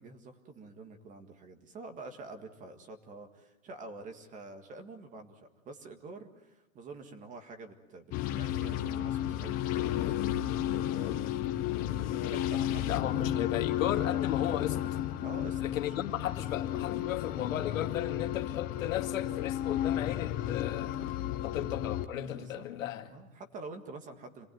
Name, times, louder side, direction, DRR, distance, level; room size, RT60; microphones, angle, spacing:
voice 1, 0.0-11.1 12.2-12.9 15.2-16.0 21.3-21.6 22.2-22.6 23.1-24.5, right 3 dB, 20° right, 1.8 m, -47 dB
sound 1, 8.1-22.1, left 12 dB, 20° left, 0.8 m, -32 dB
voice 2, 12.9-14.8 15.6-21.0 21.4-23.1, left 11 dB, 75° left, 2.3 m, -35 dB
27.0 x 19.5 x 9.3 m
supercardioid pair, 165°, 40 cm